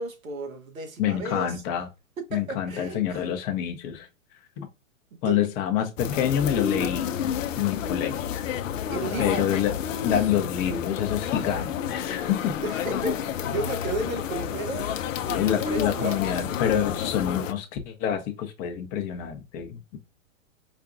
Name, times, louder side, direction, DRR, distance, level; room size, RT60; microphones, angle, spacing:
voice 1, 0.0-1.6 2.3-3.2 5.2-5.4 6.9-7.0 8.9-9.5 11.5-11.6 12.6-13.2 13.5-14.9 15.2-16.4, right 2 dB, 85° right, 1.0 m, -33 dB
voice 2, 1.0-1.9 2.3-4.1 4.6-4.7 5.2-7.1 7.6-8.5 9.2-9.8 10.0-12.6 15.3-20.0, left 9 dB, 25° left, 0.5 m, -27 dB
sound 1, 6.0-17.5, left 9 dB, 70° left, 0.5 m, -30 dB
4.9 x 2.2 x 2.5 m
hypercardioid pair, 120°, 41 cm